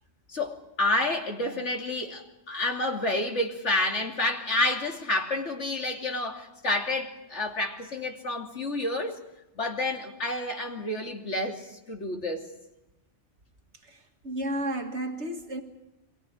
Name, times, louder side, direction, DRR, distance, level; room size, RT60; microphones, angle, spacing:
voice 1, 0.3-9.2 9.6-12.5, left 2 dB, 75° left, 3.1 m, -29 dB
voice 2, 14.2-15.6, right 1 dB, 70° right, 2.1 m, -32 dB
30.0 x 23.5 x 5.0 m
omnidirectional pair, 1.2 m